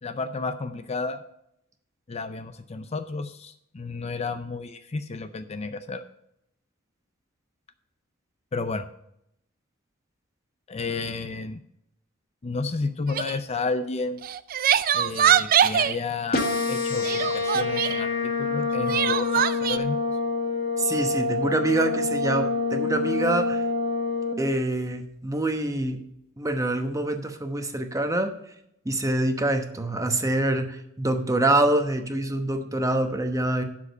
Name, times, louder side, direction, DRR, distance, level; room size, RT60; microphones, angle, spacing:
voice 1, 0.0-1.2 2.1-6.0 8.5-8.9 10.7-11.6 12.4-14.2 14.9-20.0, left 3 dB, 30° left, 10 dB, 0.5 m, -31 dB
Crying sobbing, 13.1-13.4 14.2-16.0 17.0-18.0 18.9-19.8, right 9 dB, 45° right, 0.4 m, -22 dB
sound 1, 16.3-24.3, left 3 dB, 50° left, 1.6 m, -26 dB
voice 2, 20.8-23.6 24.4-26.0 26.4-28.3 28.8-33.6, right 2 dB, 15° right, 6 dB, 1.0 m, -25 dB
11.0 x 5.0 x 6.6 m, 0.77 s
head